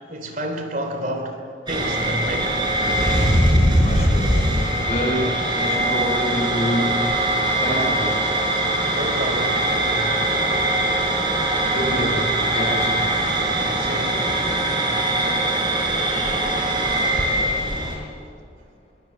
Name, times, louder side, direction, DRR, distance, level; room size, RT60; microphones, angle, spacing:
voice 1, 0.1-2.7 8.9-10.2 13.8-14.4, right 1 dB, 45° right, 5 dB, 3.1 m, -30 dB
sound 1, 1.7-18.0, right 1 dB, 25° right, 5.3 m, -21 dB
voice 2, 3.8-4.4 4.8-8.3 11.7-13.1 15.9-16.6, equal, 35° left, -2 dB, 7.8 m, -27 dB
26.5 x 23.0 x 7.4 m, 2.3 s
head